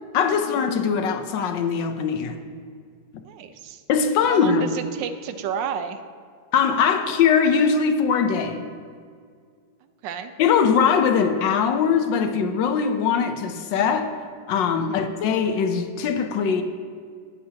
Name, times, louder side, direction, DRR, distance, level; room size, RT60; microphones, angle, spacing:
voice 1, 0.1-2.4 3.9-4.8 6.5-8.7 10.4-14.1 14.5-16.6, left 6 dB, 85° left, 7 dB, 1.4 m, -21 dB
voice 2, 3.2-3.8 4.3-6.0 10.0-10.3 14.8-15.1, right 7 dB, 85° right, 9 dB, 1.3 m, -32 dB
12.5 x 9.5 x 2.8 m, 2.1 s
omnidirectional pair, 1.9 m